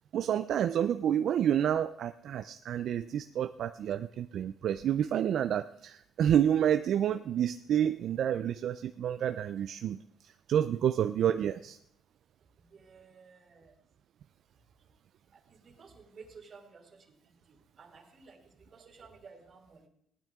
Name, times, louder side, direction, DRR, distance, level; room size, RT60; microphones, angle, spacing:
voice 1, 0.1-10.0 10.2-11.8, right 9 dB, 70° right, 10 dB, 0.4 m, -29 dB
voice 2, 12.6-13.7 15.5-17.2 17.5-19.9, right 5 dB, 45° right, 3 dB, 2.6 m, -54 dB
16.5 x 12.0 x 3.6 m, 0.70 s
cardioid pair, 90°, 0 cm